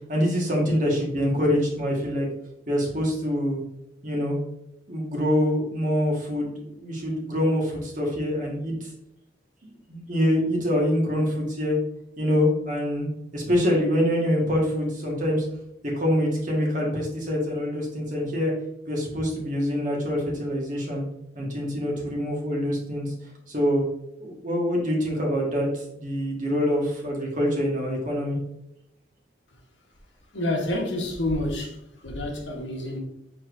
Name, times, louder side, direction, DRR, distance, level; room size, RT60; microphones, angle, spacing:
voice 1, 0.0-2.3 2.7-3.6 4.0-4.4 4.9-8.9 9.9-11.8 12.2-13.1 13.3-15.4 15.9-18.5 18.9-21.0 21.3-23.1 23.5-23.8 24.2-28.4, equal, 45° right, -1 dB, 1.4 m, -25 dB
voice 2, 30.3-31.7 32.0-33.0, left 1 dB, 75° left, 1 dB, 1.1 m, -28 dB
4.9 x 4.3 x 2.5 m, 0.80 s
head